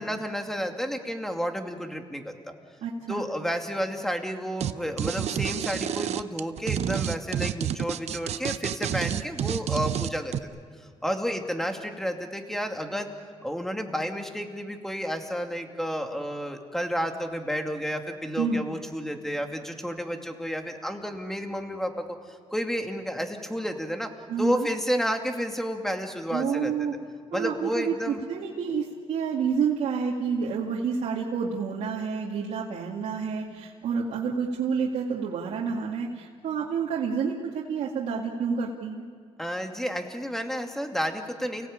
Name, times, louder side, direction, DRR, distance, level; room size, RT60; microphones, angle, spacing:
voice 1, 0.0-2.5 3.1-10.3 11.0-13.1 13.4-22.0 22.5-24.1 24.4-26.7 27.3-28.2 39.4-41.7, equal, 5° left, 4 dB, 2.4 m, -31 dB
voice 2, 2.8-3.3 18.4-18.6 24.3-24.7 26.3-26.9 27.3-39.0, right 6 dB, 90° right, -3 dB, 2.3 m, -29 dB
sound 1, 4.6-4.7 5.0-10.4, right 10 dB, 70° right, 0.7 m, -29 dB
29.5 x 18.0 x 8.8 m, 2.1 s
cardioid pair, 105°, 12 cm